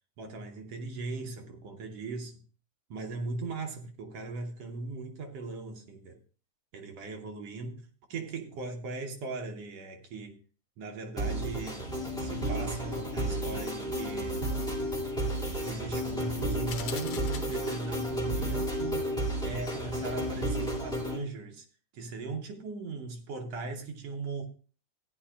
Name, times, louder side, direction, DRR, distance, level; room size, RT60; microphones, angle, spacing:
voice 1, 0.2-2.4 2.9-6.2 6.7-10.4 10.8-11.8 12.2-14.4 15.6-19.1 19.4-21.7 21.9-24.5, right 3 dB, 70° right, 1.7 m, -38 dB
sound 1, 11.2-21.2, right 1 dB, ahead, 1.4 m, -32 dB
sound 2, 16.7-18.1, left 8 dB, 80° left, 2.4 m, -42 dB
14.5 x 9.8 x 2.3 m
omnidirectional pair, 3.5 m